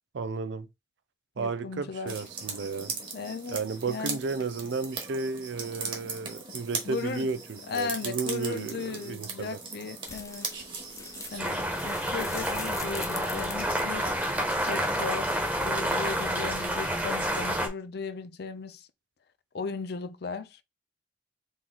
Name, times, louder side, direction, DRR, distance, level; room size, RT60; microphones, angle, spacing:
voice 1, 0.1-0.7 1.4-2.9 3.5-9.6, right 4 dB, 80° right, 0.5 m, -33 dB
voice 2, 1.4-2.2 3.1-3.6 3.9-4.2 6.8-7.3 7.7-10.5 11.3-14.1 14.5-18.9 19.5-20.6, left 4 dB, 65° left, 0.5 m, -36 dB
sound 1, 2.1-11.7, right 4 dB, 30° right, 1.5 m, -39 dB
sound 2, 10.0-16.1, left 4 dB, 20° left, 0.6 m, -43 dB
sound 3, 11.4-17.7, equal, 10° right, 1.2 m, -29 dB
3.9 x 3.0 x 4.0 m
head